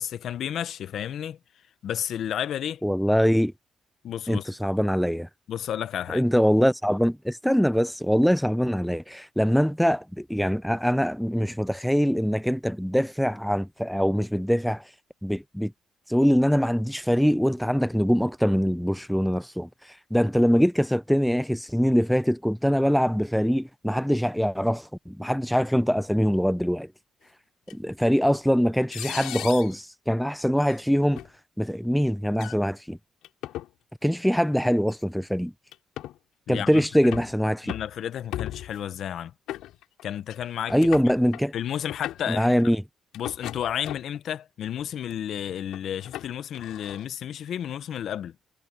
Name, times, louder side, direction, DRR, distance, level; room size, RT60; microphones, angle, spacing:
voice 1, 0.0-1.4 1.8-2.8 4.0-4.5 5.5-6.2 36.5-37.1 37.6-39.3 40.0-40.8 41.5-42.5 43.1-48.3, left 10 dB, 70° left, 0.9 m, -32 dB
voice 2, 2.8-3.5 4.3-5.3 6.1-14.9 15.2-15.7 16.1-26.9 27.7-31.2 31.6-33.0 34.0-35.5 36.5-37.7 40.7-41.5 42.3-42.8, equal, ahead, 0.5 m, -23 dB
sound 1, 27.7-27.8 28.9-29.8 30.6-30.8 31.2-31.3 32.3-32.6 33.2-33.7 34.9-35.0 35.7-36.2 36.8-37.3 37.7-38.0 38.3-38.8 39.5-40.0 40.3-40.4 40.7-41.4 41.8-42.3 43.1-44.2 44.8-45.1 45.7-47.0, left 13 dB, 90° left, 3.6 m, -37 dB
cardioid pair, 90°, 0 cm